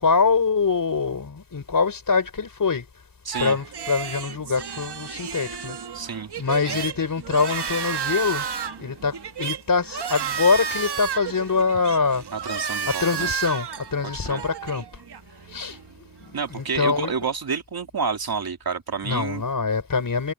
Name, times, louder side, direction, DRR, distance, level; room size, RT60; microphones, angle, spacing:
voice 1, 0.0-2.9 3.4-5.8 6.4-8.4 8.8-12.2 12.9-14.8 15.5-15.8 16.3-17.1 19.0-20.3, left 4 dB, 55° left, 4.6 m, -24 dB
voice 2, 3.3-3.6 5.9-6.3 6.7-6.8 12.3-13.3 14.3-14.4 16.3-19.4, right 5 dB, 65° right, 2.6 m, -29 dB
sound 1, 3.3-17.2, right 7 dB, 80° right, 1.5 m, -32 dB
wide cardioid pair, 115°, 39 cm